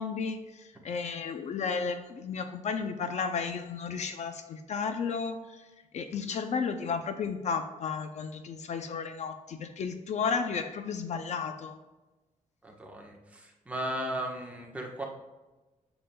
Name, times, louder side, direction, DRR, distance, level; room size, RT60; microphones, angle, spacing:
voice 1, 0.0-5.7 5.9-11.8, left 5 dB, 55° left, 8 dB, 0.5 m, -33 dB
voice 2, 12.6-15.0, right 1 dB, 10° right, -1 dB, 1.2 m, -36 dB
8.7 x 7.0 x 2.3 m, 1.1 s
wide cardioid pair, 155°, 14 cm